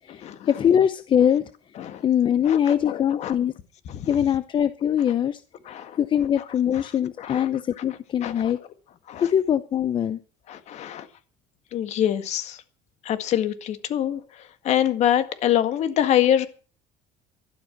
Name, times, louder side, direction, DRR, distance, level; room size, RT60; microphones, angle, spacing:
voice 1, 0.0-1.5 2.0-3.5 4.1-5.4 6.0-8.6 9.2-10.2, left 9 dB, 35° left, 13 dB, 0.7 m, -22 dB
voice 2, 2.4-3.4 3.9-4.2 5.7-6.0 6.7-6.8 7.2-7.5 8.2-8.5 9.1-9.3 10.5-11.1 11.7-12.6 13.0-16.5, left 11 dB, 50° left, 12 dB, 1.8 m, -25 dB
12.5 x 12.0 x 6.0 m, 0.38 s
cardioid pair, 145°, 15 cm